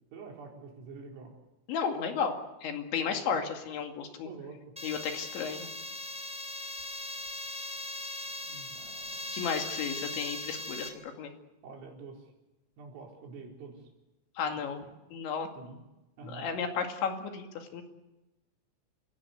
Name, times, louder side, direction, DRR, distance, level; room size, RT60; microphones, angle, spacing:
voice 1, 0.1-1.3 3.2-3.5 4.2-4.6 8.4-9.3 11.6-12.3 12.8-13.8 14.5-14.6 15.6-15.8 16.2-16.5, right 4 dB, 90° right, 0 dB, 6.8 m, -47 dB
voice 2, 1.7-4.3 4.8-5.7 9.3-11.3 14.4-14.8 15.1-15.5 16.2-17.8, left 6 dB, 70° left, 4 dB, 4.4 m, -33 dB
sound 1, 4.8-10.9, left 1 dB, ahead, 1.9 m, -39 dB
30.0 x 17.0 x 8.3 m, 1.0 s
omnidirectional pair, 5.7 m